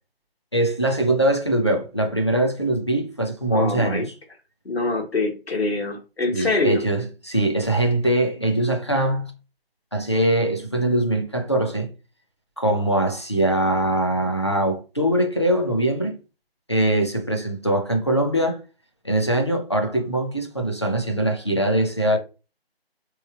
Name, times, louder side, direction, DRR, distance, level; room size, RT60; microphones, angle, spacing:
voice 1, 0.5-4.0 6.3-9.3 9.9-11.9 12.6-16.2 16.7-18.6 19.0-22.2, right 1 dB, 30° left, 0.5 m, -22 dB
voice 2, 3.5-4.1 4.6-6.8, left 3 dB, 80° left, 1.4 m, -24 dB
3.8 x 3.1 x 2.3 m
figure-of-eight pair, 160°, 31 cm